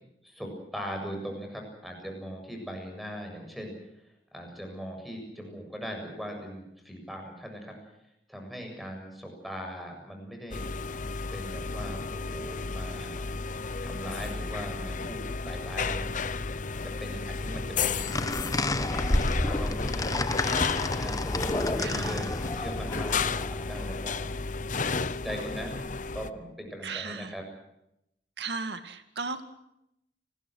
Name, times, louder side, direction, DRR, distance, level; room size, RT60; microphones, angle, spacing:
voice 1, 0.2-3.7 4.3-7.7 8.3-10.8 11.3-13.3 13.8-16.3 16.8-19.0 19.4-20.2 21.0-22.3 22.6-24.3 24.8-25.8 26.1-27.4, equal, ahead, 3 dB, 7.4 m, -40 dB
sound 1, 10.5-26.3, left 4 dB, 45° left, 0.9 m, -33 dB
sound 2, 18.0-24.0, left 2 dB, 20° left, 1.1 m, -30 dB
voice 2, 21.8-22.2 26.8-27.3 28.4-29.4, right 4 dB, 70° right, 9 dB, 2.2 m, -35 dB
29.5 x 21.0 x 6.4 m, 0.81 s
head